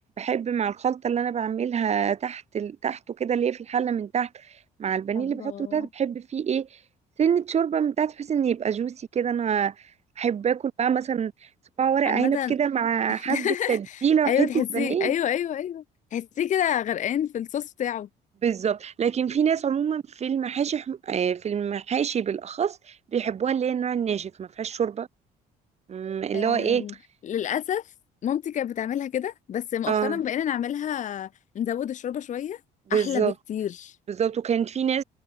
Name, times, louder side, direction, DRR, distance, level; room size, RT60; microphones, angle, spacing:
voice 1, 0.2-4.3 4.8-6.7 7.2-9.7 10.2-11.3 11.8-15.1 18.4-22.8 23.1-25.1 25.9-26.9 29.9-30.2 32.9-33.3 34.1-35.0, right 8 dB, 40° right, 1.6 m, -26 dB
voice 2, 5.1-5.9 12.1-12.5 13.1-15.8 16.1-18.1 26.3-26.9 27.2-27.9 28.2-31.3 31.5-32.6 32.9-34.0, left 10 dB, 45° left, 1.0 m, -29 dB
cardioid pair, 110°, 17 cm